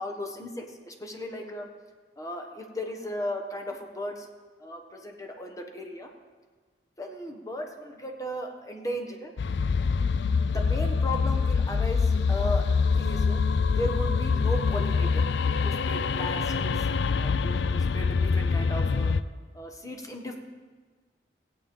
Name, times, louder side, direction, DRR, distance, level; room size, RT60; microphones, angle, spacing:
voice 1, 0.0-1.7 2.2-4.3 4.6-6.1 7.0-9.3 10.5-13.4 13.8-15.3 15.6-16.9 17.2-19.2 19.5-20.4, left 1 dB, 20° left, 3 dB, 1.4 m, -36 dB
sound 1, 9.4-19.2, left 5 dB, 70° left, 0.4 m, -25 dB
16.5 x 8.9 x 5.4 m, 1.4 s
head